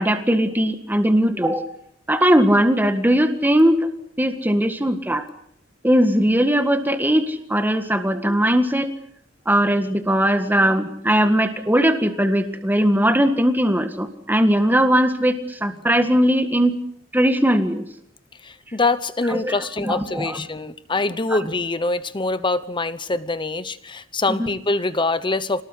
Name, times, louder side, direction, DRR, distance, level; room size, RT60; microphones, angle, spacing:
voice 1, 0.0-1.6 2.1-3.9 4.2-5.2 5.8-8.9 9.4-16.7 17.1-17.8 19.3-19.5 19.8-20.4 21.3-21.4 24.3-24.5, equal, 10° right, 7 dB, 1.8 m, -19 dB
voice 2, 18.4-25.6, left 3 dB, 25° left, 13 dB, 0.9 m, -24 dB
27.0 x 19.5 x 8.4 m, 0.70 s
head